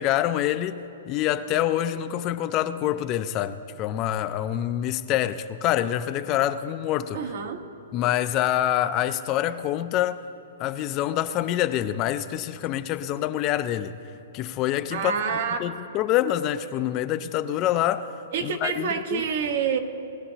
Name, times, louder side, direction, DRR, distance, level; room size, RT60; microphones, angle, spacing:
voice 1, 0.0-7.2 7.9-10.2 10.6-13.9 14.3-15.1 15.6-18.1 18.4-19.2, left 12 dB, 30° left, 0.4 m, -26 dB
voice 2, 7.1-7.6 14.9-15.6 18.3-19.8, right 6 dB, 60° right, 1.2 m, -27 dB
20.0 x 11.0 x 2.8 m
hypercardioid pair, 150°, 0 cm